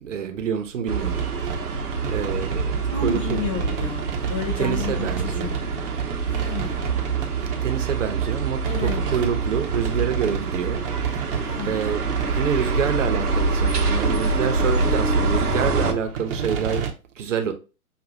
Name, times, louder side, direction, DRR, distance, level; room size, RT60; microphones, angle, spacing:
voice 1, 0.0-1.8 2.1-3.4 4.3-5.6 7.6-16.9 17.2-17.5, right 7 dB, 55° right, 1.0 m, -27 dB
sound 1, 0.9-15.9, right 4 dB, 85° right, 1.0 m, -25 dB
sound 2, 1.1-16.9, right 6 dB, 40° right, 0.9 m, -33 dB
voice 2, 2.9-7.0 8.7-9.2 11.4-11.8, left 7 dB, 25° left, 0.5 m, -32 dB
6.3 x 2.6 x 2.6 m
figure-of-eight pair, 125°, 44 cm